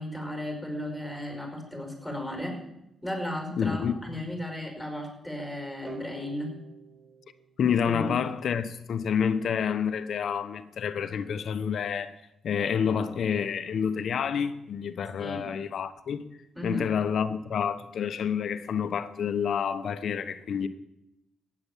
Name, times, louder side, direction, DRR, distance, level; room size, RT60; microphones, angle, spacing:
voice 1, 0.0-2.6 3.0-6.5 7.8-8.2 15.2-15.5 16.5-16.9, left 1 dB, ahead, 5.3 m, -35 dB
voice 2, 3.6-4.0 7.6-12.1 12.4-16.2 16.6-20.7, left 7 dB, 65° left, 1.0 m, -28 dB
sound 1, 5.9-8.7, right 4 dB, 20° right, 3.1 m, -47 dB
15.5 x 9.8 x 7.3 m
cardioid pair, 105°, 0 cm